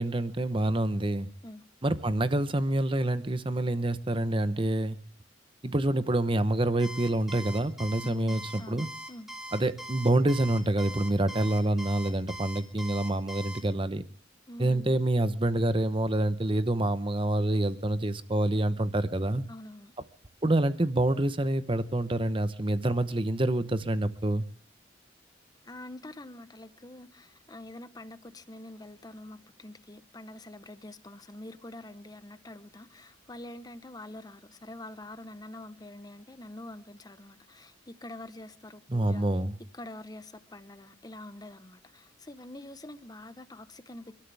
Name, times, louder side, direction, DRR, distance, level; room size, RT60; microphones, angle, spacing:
voice 1, 0.0-1.3 1.8-5.0 5.6-8.9 9.5-14.0 14.6-19.4 20.4-24.4 38.9-39.6, right 1 dB, 25° right, 0.9 m, -27 dB
Alarm, 6.8-13.6, equal, 5° right, 3.0 m, -41 dB
voice 2, 8.0-9.3 14.5-14.9 19.5-19.9 25.6-39.3 39.7-44.1, left 1 dB, 20° left, 0.9 m, -45 dB
30.0 x 13.0 x 3.4 m
head